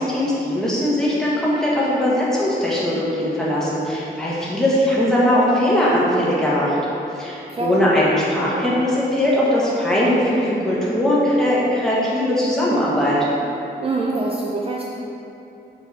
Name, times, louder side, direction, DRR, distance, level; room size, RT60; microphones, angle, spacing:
voice 1, 0.0-6.8 7.1-13.2, left 1 dB, 5° left, -8 dB, 1.5 m, -20 dB
voice 2, 7.5-7.8 13.8-14.8, right 3 dB, 30° right, -3 dB, 0.5 m, -24 dB
7.0 x 4.5 x 4.8 m, 2.9 s
wide cardioid pair, 170°, 18 cm